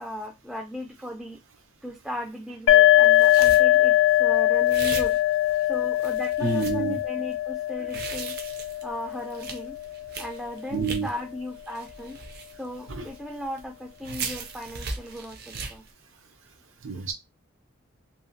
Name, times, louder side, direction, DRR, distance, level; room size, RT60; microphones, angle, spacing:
voice 1, 0.0-1.4 1.8-5.2 5.7-8.3 8.8-9.7 10.2-12.2 12.6-15.8, left 1 dB, ahead, 0 dB, 0.4 m, -37 dB
sound 1, 2.7-10.2, left 14 dB, 75° left, 0.3 m, -21 dB
sound 2, 3.0-4.0 4.7-5.6 6.0-6.8 7.7-11.2 11.6-13.2 13.6-13.7 14.0-15.9, right 4 dB, 50° right, 0.5 m, -37 dB
voice 2, 6.4-7.0 10.7-11.1 13.0-13.1 16.8-17.1, right 4 dB, 80° right, 5 dB, 0.8 m, -27 dB
2.8 x 2.3 x 2.7 m, 0.22 s
head